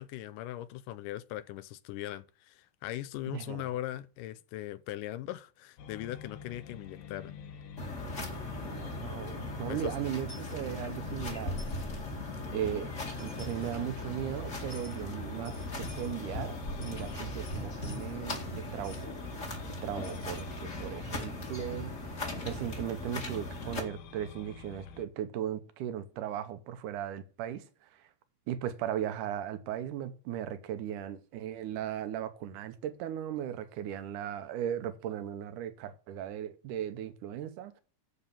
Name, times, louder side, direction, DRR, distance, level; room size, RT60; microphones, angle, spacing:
voice 1, 0.0-7.3 9.6-9.9, left 14 dB, 85° left, 2.2 m, -40 dB
voice 2, 3.3-3.7 8.7-11.6 12.5-12.9 13.2-19.1 19.8-28.0 28.5-37.8, right 10 dB, 80° right, 2.4 m, -37 dB
sound 1, 5.8-25.1, left 6 dB, 70° left, 2.2 m, -47 dB
sound 2, 7.8-23.8, left 1 dB, 25° left, 1.9 m, -39 dB
Coin (dropping), 10.3-10.5 11.6-11.8 12.9-13.0 13.2-13.7 14.7-15.0 15.5-16.2 16.7-18.5 18.8-19.1 20.0-22.7, left 2 dB, 55° left, 4.4 m, -55 dB
11.0 x 4.3 x 7.2 m
omnidirectional pair, 3.7 m